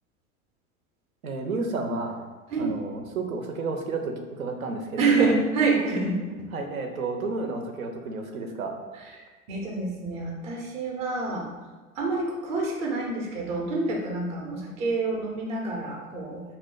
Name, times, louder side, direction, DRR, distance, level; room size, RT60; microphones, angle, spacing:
voice 1, 1.2-2.2 2.6-5.4 6.5-8.8, right 3 dB, 85° right, 4 dB, 0.5 m, -31 dB
voice 2, 5.0-6.2 9.2-11.5 12.0-16.4, right 3 dB, 15° right, 0 dB, 0.4 m, -27 dB
2.6 x 2.3 x 3.6 m, 1.3 s
figure-of-eight pair, 85°, 41 cm